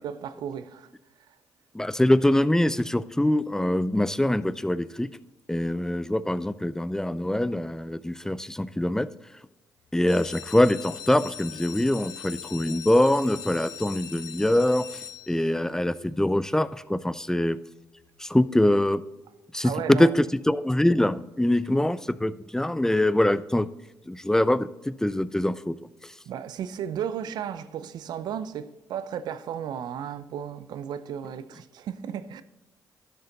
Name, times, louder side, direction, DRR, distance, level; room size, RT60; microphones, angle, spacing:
voice 1, 0.0-0.9 19.6-20.1 26.3-32.4, right 9 dB, 70° right, 0.6 m, -34 dB
voice 2, 1.7-5.1 5.5-9.1 9.9-17.6 18.2-19.0 19.5-23.7 24.1-25.8, left 1 dB, 5° left, 0.5 m, -24 dB
sound 1, 10.1-15.7 16.3-16.8 17.2-17.3 17.5-17.6 18.1-18.2, left 8 dB, 60° left, 0.7 m, -41 dB
12.0 x 6.8 x 3.9 m
hypercardioid pair, 55°, 7 cm